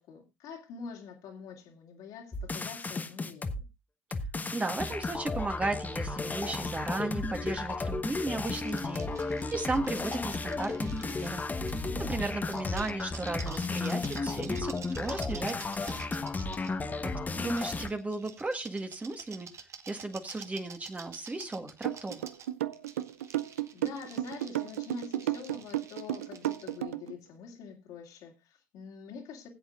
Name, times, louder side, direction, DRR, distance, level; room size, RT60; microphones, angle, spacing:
voice 1, 0.0-3.6 12.4-12.6 17.0-17.5 23.3-23.4 23.7-29.5, left 5 dB, 60° left, 2.6 m, -46 dB
sound 1, 2.3-3.6 4.1-17.9, left 3 dB, 25° left, 1.2 m, -34 dB
voice 2, 4.5-11.4 12.0-16.1 17.0-19.5 19.9-22.2, right 2 dB, 20° right, 1.6 m, -35 dB
sound 2, 8.4-11.9 12.3-16.7 17.5-26.8, right 6 dB, 40° right, 1.4 m, -49 dB
sound 3, 21.8-27.1, right 13 dB, 80° right, 0.5 m, -32 dB
20.0 x 8.0 x 2.5 m
hypercardioid pair, 65°, 7 cm